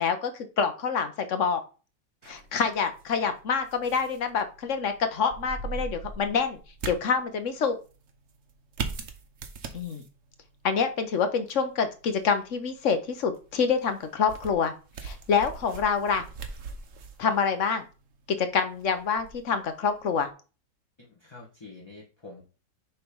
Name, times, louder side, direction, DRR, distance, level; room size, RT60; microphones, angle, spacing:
voice 1, 0.0-1.6 2.3-6.6 6.9-7.8 9.7-10.0 10.6-14.7 15.0-16.2 17.2-17.9 18.3-20.3, left 6 dB, 55° left, 8 dB, 1.0 m, -26 dB
sound 1, 2.2-20.3, right 5 dB, 55° right, 1.1 m, -42 dB
voice 2, 21.0-22.4, left 3 dB, 15° left, -4 dB, 1.3 m, -47 dB
6.9 x 3.3 x 5.4 m, 0.34 s
omnidirectional pair, 1.9 m